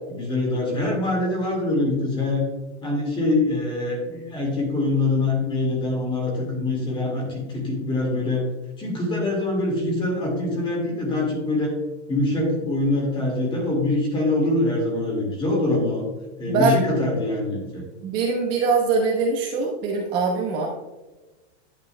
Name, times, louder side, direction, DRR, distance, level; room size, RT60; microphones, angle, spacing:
voice 1, 0.1-2.4 2.8-8.5 8.8-11.7 12.1-16.0 16.4-17.8, left 2 dB, 15° left, 0 dB, 2.0 m, -24 dB
voice 2, 16.5-16.8 18.0-20.7, right 4 dB, 30° right, -1 dB, 1.1 m, -22 dB
11.0 x 7.8 x 2.2 m, 1.1 s
supercardioid pair, 165°, 35 cm